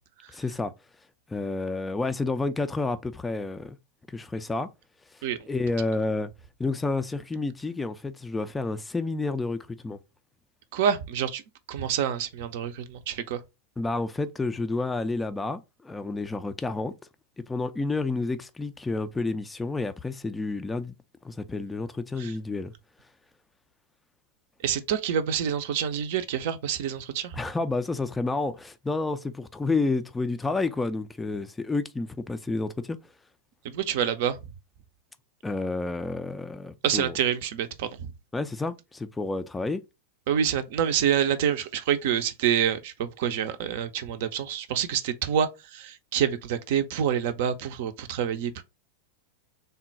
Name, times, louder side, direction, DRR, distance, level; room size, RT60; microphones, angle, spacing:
voice 1, 0.3-0.7 1.3-3.8 4.1-4.7 5.5-6.3 6.6-9.6 9.8-10.0 13.8-16.9 17.5-20.9 21.2-22.7 27.3-33.0 35.4-37.2 38.3-39.8, left 3 dB, 10° left, 0.3 m, -30 dB
voice 2, 10.7-11.4 11.7-13.4 22.2-22.3 24.6-27.4 33.7-34.4 36.8-37.9 40.3-45.5 45.7-48.6, right 9 dB, 50° right, 0.5 m, -27 dB
3.6 x 2.2 x 3.9 m
figure-of-eight pair, 90°, 0 cm